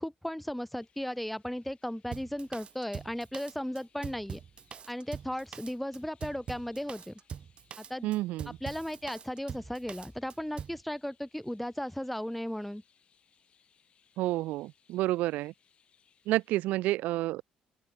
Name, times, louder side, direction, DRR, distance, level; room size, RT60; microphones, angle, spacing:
voice 1, 0.0-4.4 4.9-7.2 7.8-8.1 8.5-12.8, equal, 5° left, 0.6 m, -36 dB
Chirp tweet, 0.8-16.6, left 7 dB, 45° left, 7.0 m, -69 dB
Drum kit, 2.1-10.8, right 7 dB, 40° right, 0.8 m, -43 dB
voice 2, 8.0-8.6 14.2-15.5 16.3-17.4, right 17 dB, 85° right, 0.4 m, -30 dB
open air
cardioid pair, 115°, 3 cm